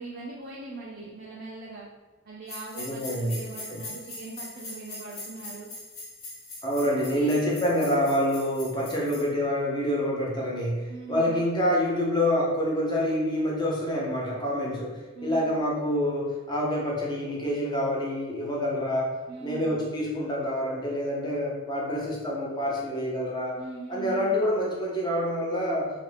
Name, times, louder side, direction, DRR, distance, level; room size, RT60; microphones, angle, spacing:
voice 1, 0.0-1.9 2.2-5.7 6.8-7.5 10.9-11.4 15.1-15.5 19.3-19.8 23.6-24.4, right 3 dB, 45° right, -4 dB, 0.5 m, -40 dB
sound 1, 2.5-9.3, left 2 dB, 85° left, 0.9 m, -42 dB
voice 2, 2.8-3.4 3.7-3.8 6.6-23.5 23.9-25.9, equal, 20° left, -4 dB, 0.7 m, -27 dB
3.2 x 2.4 x 3.3 m, 1.2 s
head